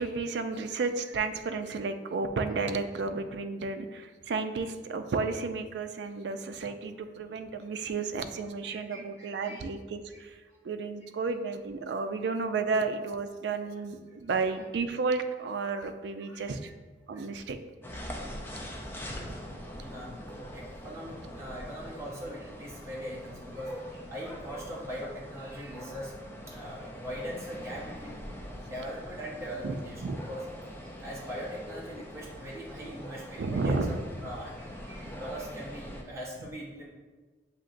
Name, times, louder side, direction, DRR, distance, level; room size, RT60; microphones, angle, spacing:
voice 1, 0.0-10.4 10.6-16.7 17.1-17.6 29.6-29.8 30.0-30.2 33.4-34.0, right 4 dB, 70° right, 8 dB, 0.4 m, -32 dB
voice 2, 8.6-9.7 10.1-10.2 13.7-13.8 14.1-14.2 16.2-16.4 17.1-17.2 19.0-19.4 19.8-20.2 20.5-26.1 26.5-28.2 28.6-30.4 31.0-36.9, equal, 15° right, -6 dB, 0.8 m, -41 dB
sound 1, 17.8-36.0, equal, 10° left, 0.4 m, -43 dB
7.4 x 2.8 x 2.5 m, 1.3 s
head